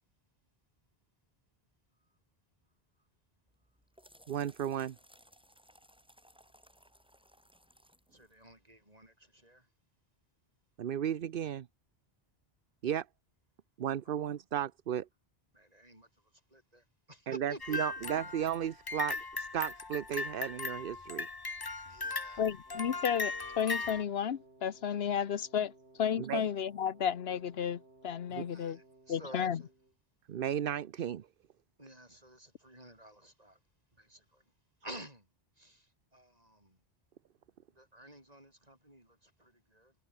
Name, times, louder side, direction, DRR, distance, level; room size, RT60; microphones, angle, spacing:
sound 1, 3.5-9.1, equal, 5° right, 7.1 m, -63 dB
voice 1, 4.3-5.0 10.8-11.7 12.8-13.1 13.8-15.1 17.3-21.3 26.2-26.4 28.3-28.5 30.3-31.3, right 10 dB, 60° right, 0.9 m, -34 dB
voice 2, 8.1-9.7 14.0-14.2 15.5-18.1 21.8-22.5 28.5-29.7 31.8-33.6 33.9-34.5 34.8-35.3 35.5-36.8 37.7-40.0, right 1 dB, 40° right, 8.1 m, -52 dB
sound 2, 17.6-24.0, left 3 dB, 25° left, 0.8 m, -38 dB
voice 3, 22.4-25.7 26.0-28.8 29.1-29.6, left 8 dB, 80° left, 1.1 m, -32 dB
Wind instrument woodwind instrument, 22.6-30.0, right 2 dB, 90° right, 4.8 m, -60 dB
omnidirectional pair, 1.0 m